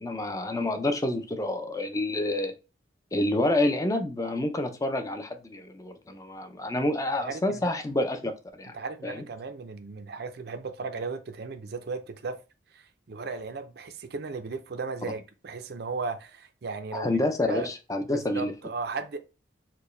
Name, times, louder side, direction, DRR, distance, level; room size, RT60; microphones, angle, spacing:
voice 1, 0.0-2.5 3.1-8.8 9.0-9.2 16.9-18.5, left 1 dB, 15° left, 0.4 m, -28 dB
voice 2, 7.2-7.8 8.7-12.4 12.7-17.2 17.5-17.7 18.1-19.2, right 4 dB, 55° right, 0.5 m, -36 dB
4.5 x 2.2 x 3.1 m
head